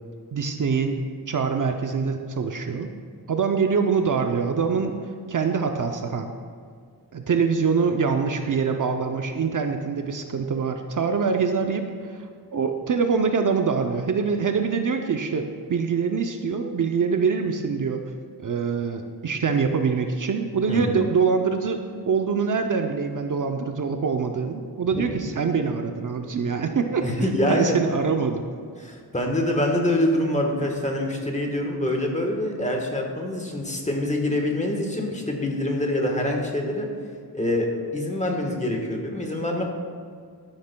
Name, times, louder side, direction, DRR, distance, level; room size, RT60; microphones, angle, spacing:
voice 1, 0.3-1.0 1.3-2.9 3.3-6.3 7.1-18.0 18.4-21.8 22.0-28.4, right 5 dB, 50° right, 5 dB, 0.6 m, -24 dB
voice 2, 27.0-27.8 28.8-36.9 37.3-39.6, left 1 dB, 15° left, 1 dB, 1.3 m, -25 dB
12.0 x 9.7 x 2.2 m, 2.1 s
wide cardioid pair, 125°, 40 cm